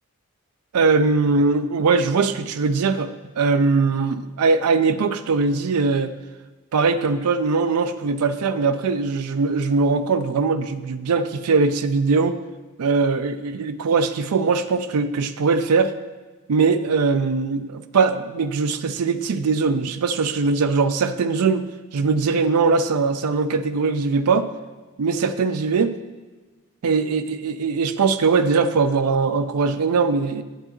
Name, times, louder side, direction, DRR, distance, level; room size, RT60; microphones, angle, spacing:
voice 1, 0.7-3.1 3.4-6.1 6.7-12.4 12.8-15.9 16.5-21.6 21.9-24.5 25.0-25.9 26.8-30.4, right 4 dB, 85° right, 10 dB, 0.4 m, -21 dB
8.8 x 7.8 x 3.0 m, 1.3 s
head